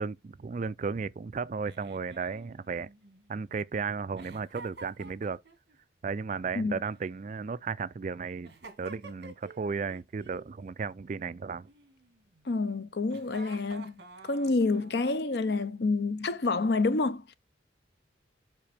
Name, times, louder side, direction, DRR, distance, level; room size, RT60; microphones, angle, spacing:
voice 1, 0.0-2.9 3.3-5.4 6.0-8.5 8.8-11.7, right 5 dB, 40° right, 0.3 m, -34 dB
Giggle, 1.6-3.5 4.2-5.8 6.8-7.8 8.4-9.6 9.9-10.4 11.7-12.4 13.1-15.1, right 3 dB, 60° right, 1.7 m, -50 dB
voice 2, 12.5-17.3, left 3 dB, 60° left, 0.6 m, -28 dB
7.5 x 4.9 x 3.4 m
head